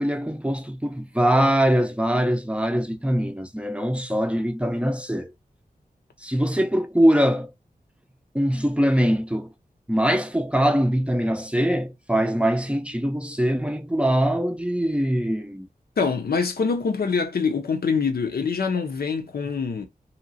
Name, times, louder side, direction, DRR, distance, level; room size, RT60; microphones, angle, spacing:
voice 1, 0.0-5.3 6.2-7.5 8.3-9.5 9.9-15.7, equal, 5° right, 0.4 m, -22 dB
voice 2, 16.0-19.8, left 5 dB, 90° left, 0.6 m, -24 dB
2.9 x 2.8 x 2.6 m
wide cardioid pair, 75°, 16 cm